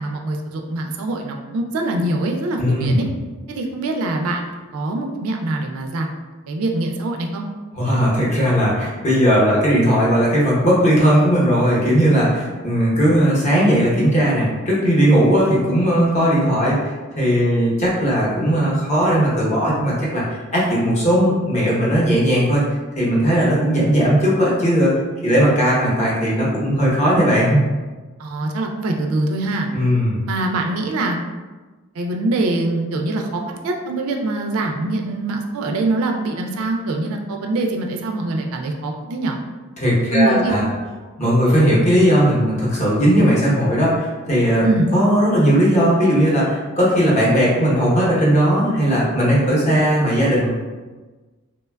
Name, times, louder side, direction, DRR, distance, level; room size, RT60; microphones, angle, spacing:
voice 1, 0.0-3.1 3.5-4.4 4.7-6.1 6.5-7.5 28.2-29.7 30.2-31.2 32.0-39.4 40.1-40.7 44.6-44.9, right 2 dB, 70° right, 3 dB, 0.3 m, -23 dB
voice 2, 2.6-3.0 7.7-22.6 23.0-27.6 29.7-30.2 39.8-40.7 41.2-44.7 44.9-50.5, equal, 30° left, -6 dB, 0.7 m, -17 dB
3.1 x 2.1 x 2.2 m, 1.3 s
head